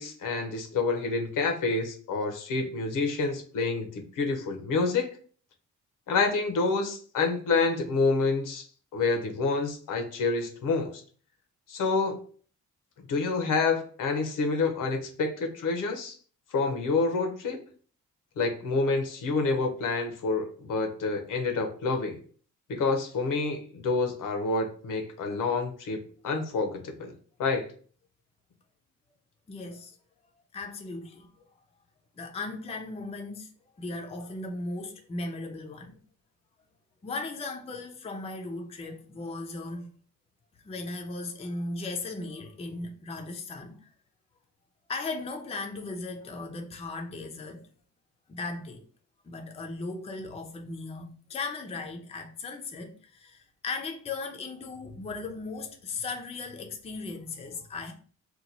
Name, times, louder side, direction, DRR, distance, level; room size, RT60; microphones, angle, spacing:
voice 1, 0.0-5.1 6.1-8.6 8.9-11.0 11.7-12.2 13.1-16.2 16.5-17.6 18.4-22.2 22.7-27.1 27.4-27.7, left 3 dB, 80° left, 0.8 m, -28 dB
voice 2, 29.5-29.9 30.5-31.3 32.2-33.5 33.7-36.0 37.0-39.9 40.6-43.9 44.9-47.7 48.3-48.9 49.2-57.9, left 3 dB, 20° left, 0.4 m, -37 dB
2.9 x 2.2 x 3.9 m
wide cardioid pair, 150°, 32 cm